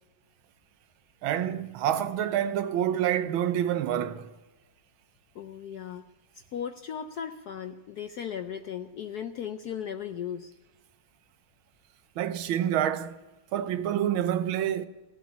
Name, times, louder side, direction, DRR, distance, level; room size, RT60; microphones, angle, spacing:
voice 1, 1.2-4.3 12.2-13.1 13.5-14.9, right 10 dB, 80° right, 1.6 m, -27 dB
voice 2, 5.3-6.0 6.5-10.5, left 8 dB, 70° left, 0.9 m, -36 dB
16.0 x 7.9 x 9.6 m
omnidirectional pair, 2.3 m